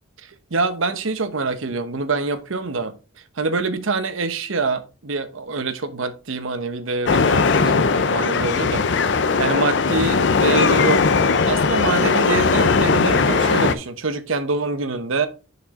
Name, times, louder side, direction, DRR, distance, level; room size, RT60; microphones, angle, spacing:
voice 1, 0.2-3.0 3.4-8.9 9.4-11.1 11.4-15.3, right 3 dB, 75° right, 0.9 m, -25 dB
sound 1, 7.0-13.7, left 4 dB, 60° left, 0.5 m, -18 dB
6.2 x 5.6 x 3.6 m
head